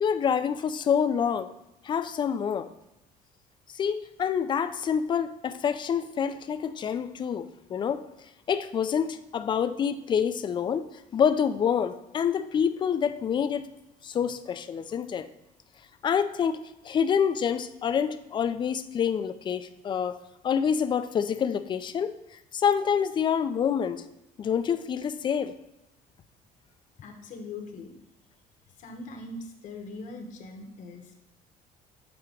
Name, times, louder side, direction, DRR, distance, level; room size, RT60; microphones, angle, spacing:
voice 1, 0.0-1.5 1.8-2.7 3.7-8.0 8.5-10.9 11.1-13.7 14.0-15.3 16.0-16.6 16.8-20.2 20.4-22.1 22.5-24.0 24.4-25.5, left 7 dB, 30° left, 11 dB, 0.4 m, -27 dB
voice 2, 27.0-27.9 28.8-31.2, left 2 dB, 55° left, 4 dB, 1.0 m, -41 dB
7.6 x 2.9 x 4.9 m, 0.91 s
cardioid pair, 130°, 16 cm